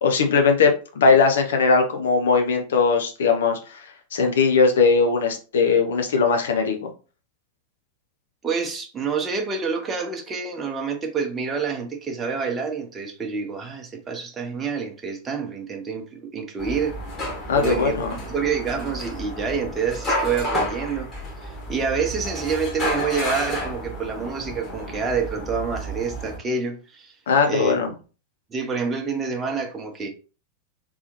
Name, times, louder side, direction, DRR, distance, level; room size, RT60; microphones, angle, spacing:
voice 1, 0.0-3.8 4.1-6.9 17.5-18.1 27.3-27.9, left 5 dB, 60° left, 0.9 m, -19 dB
voice 2, 8.4-17.0 17.6-21.1 21.4-27.1 27.5-27.9 28.5-30.1, right 5 dB, 20° right, 0.9 m, -27 dB
sound 1, 16.6-26.4, left 1 dB, 30° left, 1.8 m, -31 dB
3.6 x 3.3 x 3.1 m
figure-of-eight pair, 90°, 0 cm